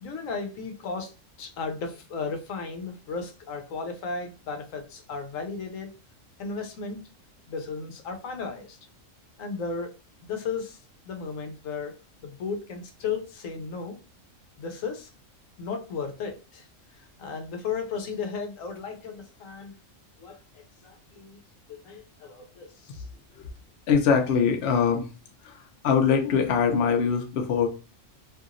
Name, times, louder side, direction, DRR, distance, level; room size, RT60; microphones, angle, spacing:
voice 1, 0.0-5.9 6.4-7.0 7.5-8.8 9.4-9.9 10.2-10.8 11.0-12.0 12.2-14.0 14.6-15.1 15.6-16.7 16.9-19.8 20.2-21.4 21.7-23.1, left 5 dB, 80° left, 4 dB, 1.0 m, -35 dB
voice 2, 23.9-25.1 25.4-25.6 25.8-27.7, left 6 dB, 60° left, 4 dB, 0.8 m, -22 dB
2.8 x 2.7 x 2.5 m, 0.32 s
omnidirectional pair, 1.4 m